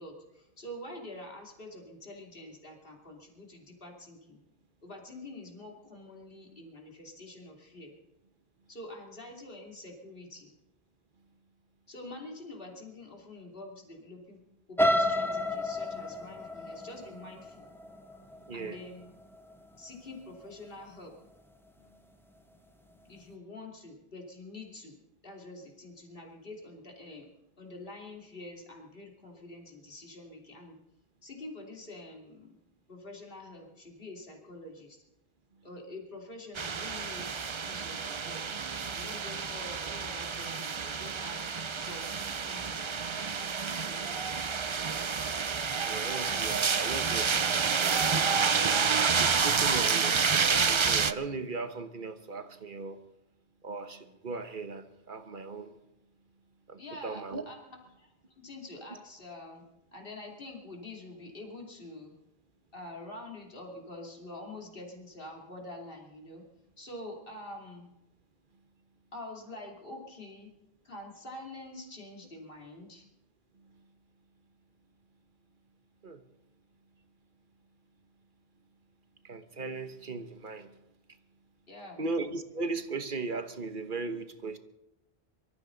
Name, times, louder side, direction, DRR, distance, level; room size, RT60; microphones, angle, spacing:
voice 1, 0.0-4.4 4.8-7.9 8.7-10.5 11.9-14.4 14.7-17.7 18.5-19.1 19.8-21.1 23.1-24.9 25.2-27.3 27.6-30.8 31.2-32.6 32.9-35.0 35.6-38.4 38.9-42.9 43.4-44.2 56.8-59.6 59.9-62.1 62.7-66.4 66.8-67.9 69.1-70.5 70.8-73.1 81.7-82.0, left 2 dB, 60° left, 0 dB, 3.1 m, -46 dB
sound 1, 14.8-18.7 19.2-19.5 19.9-20.0, left 1 dB, ahead, 0.9 m, -30 dB
voice 2, 18.5-18.8 45.8-48.7 49.2-53.0 53.6-55.8 56.7-57.5 73.5-73.7 76.0-76.2 79.2-80.8 82.0-84.6, right 3 dB, 55° right, 8 dB, 1.3 m, -38 dB
sound 2, 36.5-51.1, right 5 dB, 35° right, 0.5 m, -29 dB
23.5 x 14.0 x 4.0 m, 0.90 s
omnidirectional pair, 1.0 m